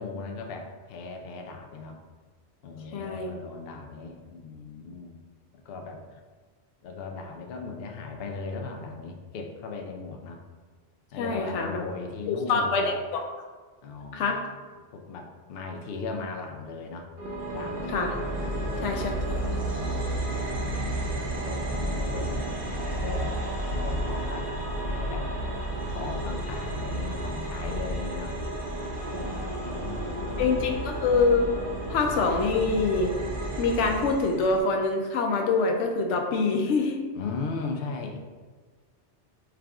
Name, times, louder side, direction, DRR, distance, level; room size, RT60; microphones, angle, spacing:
voice 1, 0.0-2.0 2.6-5.2 5.5-6.0 6.8-10.4 11.1-12.9 13.8-14.4 14.7-17.1 17.5-18.0 18.4-18.9 19.4-22.5 23.0-23.4 23.7-24.5 24.8-25.3 25.9-28.3 29.1-30.8 32.4-32.5 37.2-38.2, left 4 dB, 65° left, 2 dB, 0.7 m, -38 dB
voice 2, 2.9-3.3 11.2-11.8 12.3-13.2 14.1-14.4 17.9-18.1 18.8-19.5 30.4-31.5 31.9-33.1 33.6-37.0, left 4 dB, 90° left, 3 dB, 0.9 m, -25 dB
sound 1, 17.2-34.6, right 1 dB, 55° right, 0.9 m, -32 dB
4.7 x 2.4 x 3.4 m, 1.4 s
omnidirectional pair, 1.2 m